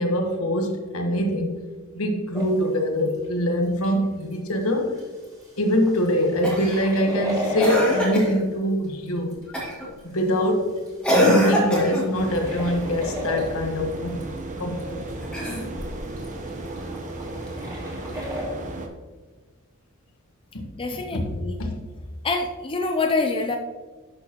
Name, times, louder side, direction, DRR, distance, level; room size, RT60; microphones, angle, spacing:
voice 1, 0.0-1.6 1.9-5.0 5.6-9.4 10.0-10.8 11.1-14.2 14.6-15.0 20.5-21.8, equal, 70° left, 3 dB, 1.3 m, -24 dB
sound 1, 2.3-2.7 3.2-3.3 3.8-3.9 4.3-4.4 4.6-4.7 4.9-5.4 5.7-8.5 9.1-9.7 10.5-13.7 13.9-14.2 14.5-14.6 14.8-14.9 15.1-15.2 15.4-15.5 15.8-15.9 16.2-18.4, equal, 15° right, 2.2 m, -33 dB
Cough, 6.4-6.8 7.6-8.4 9.5-9.9 11.0-12.1 15.2-16.0 17.5-17.6, equal, 5° left, 1.9 m, -22 dB
sound 2, 12.1-18.9, right 2 dB, 35° right, 0.9 m, -34 dB
voice 2, 20.8-21.6 22.2-23.6, left 3 dB, 25° left, 4 dB, 0.5 m, -25 dB
11.0 x 6.3 x 3.0 m, 1.4 s
head